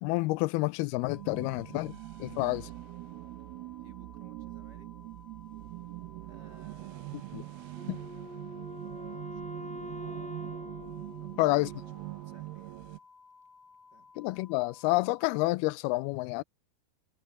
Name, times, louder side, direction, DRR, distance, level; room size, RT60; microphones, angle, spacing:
voice 1, 0.0-2.7 7.3-7.4 7.9-8.0 11.4-11.7 14.2-16.4, left 21 dB, 90° left, 2.5 m, -29 dB
sound 1, 1.0-15.5, left 4 dB, 70° left, 8.4 m, -57 dB
sound 2, 1.1-13.0, right 22 dB, 85° right, 2.5 m, -43 dB
voice 2, 2.2-2.6 3.8-4.9 6.3-9.7 10.9-13.0 13.9-14.1, right 2 dB, 25° right, 5.8 m, -61 dB
Wind instrument woodwind instrument, 7.7-12.2, equal, 10° left, 0.4 m, -44 dB
omnidirectional pair, 4.4 m